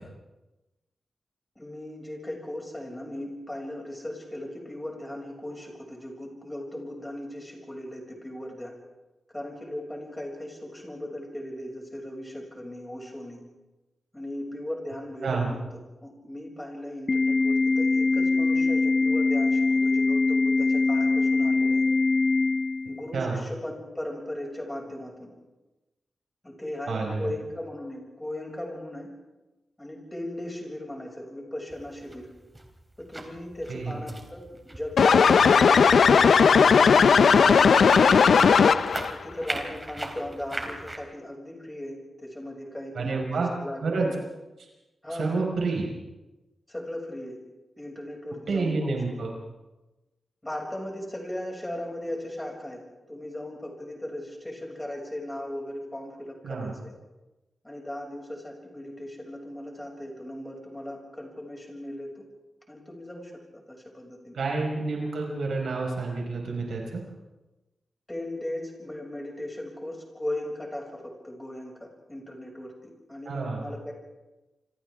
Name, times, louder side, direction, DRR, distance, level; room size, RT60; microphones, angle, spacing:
voice 1, 1.5-8.7 9.3-13.4 14.1-15.6 16.0-21.8 22.9-25.3 26.4-29.1 29.8-32.3 33.0-36.3 36.9-38.6 39.1-44.2 45.0-45.4 46.7-47.4 47.8-49.0 50.4-56.9 57.6-62.2 62.7-63.3 63.7-64.4 68.1-73.9, left 1 dB, 10° left, 0 dB, 6.6 m, -37 dB
Organ, 17.1-23.1, left 3 dB, 35° left, 0.8 m, -23 dB
voice 2, 26.9-27.3 33.7-34.0 42.9-43.5 43.8-44.1 45.1-45.9 48.5-49.3 56.4-56.7 64.3-67.0 73.2-73.7, right 3 dB, 75° right, -1 dB, 5.2 m, -29 dB
sound 1, 31.7-41.0, right 1 dB, 20° right, 3.4 m, -40 dB
sound 2, 35.0-39.1, left 6 dB, 70° left, 0.7 m, -17 dB
28.0 x 26.0 x 3.7 m, 1.1 s
wide cardioid pair, 110°, 0 cm